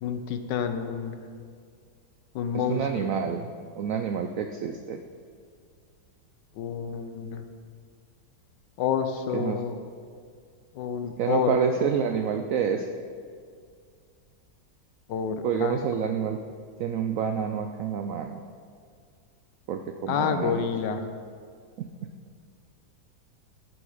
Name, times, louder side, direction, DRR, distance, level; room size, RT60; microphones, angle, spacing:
voice 1, 0.0-1.2 2.3-3.1 6.6-7.5 8.8-9.8 10.7-11.6 15.1-15.9 20.1-21.0, left 7 dB, 75° left, 8 dB, 1.3 m, -29 dB
voice 2, 2.5-3.5 3.8-5.0 9.3-9.7 11.2-12.9 15.4-16.4 16.8-18.4 19.7-20.6 21.8-21.9, right 7 dB, 80° right, 6 dB, 0.7 m, -28 dB
10.5 x 7.8 x 4.9 m, 2.2 s
omnidirectional pair, 1.9 m